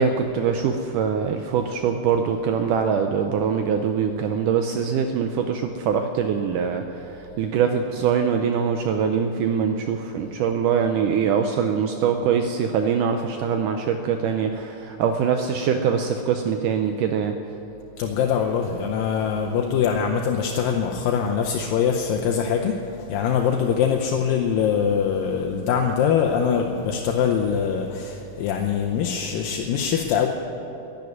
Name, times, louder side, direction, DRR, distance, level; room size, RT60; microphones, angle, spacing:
voice 1, 0.0-17.4, right 7 dB, 85° right, 6 dB, 1.9 m, -23 dB
voice 2, 18.0-22.8 23.1-30.3, left 7 dB, 80° left, 1 dB, 2.4 m, -23 dB
12.0 x 11.0 x 9.4 m, 2.9 s
omnidirectional pair, 4.3 m